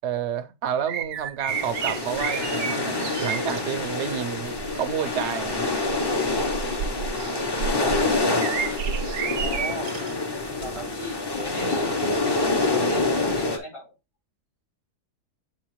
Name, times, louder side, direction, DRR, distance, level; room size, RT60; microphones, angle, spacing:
voice 1, 0.0-2.9 3.2-5.7 13.3-13.4, right 8 dB, 70° right, 0.6 m, -30 dB
sound 1, 0.9-3.6 4.5-4.8 5.4-10.1 10.6-10.8 12.6-12.7, right 7 dB, 90° right, 1.2 m, -31 dB
sound 2, 1.5-13.6, left 3 dB, 40° left, 0.3 m, -26 dB
voice 2, 7.6-8.2 9.4-9.9 10.6-11.9 12.7-13.9, left 1 dB, 75° left, 4.6 m, -36 dB
7.2 x 4.4 x 3.0 m
omnidirectional pair, 1.6 m